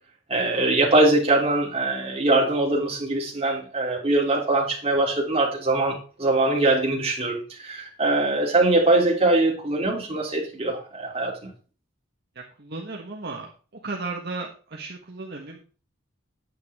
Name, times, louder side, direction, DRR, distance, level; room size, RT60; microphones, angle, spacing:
voice 1, 0.3-11.5, right 2 dB, 30° right, 3.3 m, -22 dB
voice 2, 12.3-13.5 13.8-15.6, right 3 dB, 50° right, 1.4 m, -35 dB
9.6 x 8.4 x 3.6 m
head